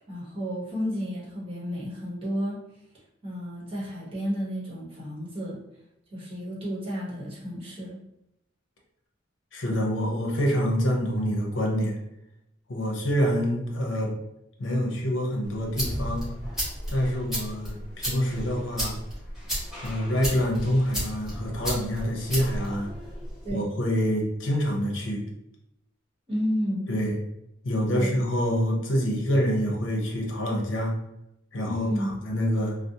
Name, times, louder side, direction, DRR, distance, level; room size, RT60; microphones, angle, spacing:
voice 1, 0.1-2.6 3.2-5.6 6.1-8.0 23.4-23.6 26.3-26.9 27.9-28.2 31.7-32.1, equal, 30° right, -7 dB, 0.9 m, -31 dB
voice 2, 9.5-12.0 12.7-14.1 14.6-16.3 16.9-19.0 19.8-22.9 23.5-25.3 26.9-27.2 27.6-30.9 31.5-32.8, equal, 80° left, 0 dB, 0.6 m, -26 dB
sound 1, 15.4-23.5, equal, ahead, 1.0 m, -34 dB
2.5 x 2.0 x 2.7 m, 0.83 s
head